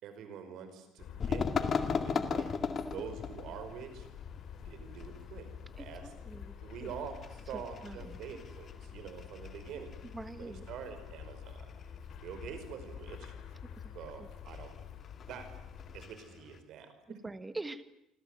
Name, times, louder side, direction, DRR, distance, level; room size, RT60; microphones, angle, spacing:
voice 1, 0.0-2.5 2.9-4.1 4.6-5.5 5.8-6.1 6.6-10.0 10.3-11.7 12.2-13.3 13.9-14.8 15.3-15.5 15.9-17.2, right 7 dB, 55° right, 9 dB, 5.2 m, -46 dB
sound 1, 1.0-16.1, left 8 dB, 45° left, 3.1 m, -48 dB
sound 2, 1.2-16.6, left 6 dB, 30° left, 2.0 m, -39 dB
voice 2, 2.1-2.7 5.8-6.9 7.5-8.2 10.1-10.6 13.8-14.3 17.1-17.8, right 2 dB, 10° right, 12 dB, 1.3 m, -45 dB
27.5 x 26.5 x 8.1 m, 0.79 s
cardioid pair, 175°, 0 cm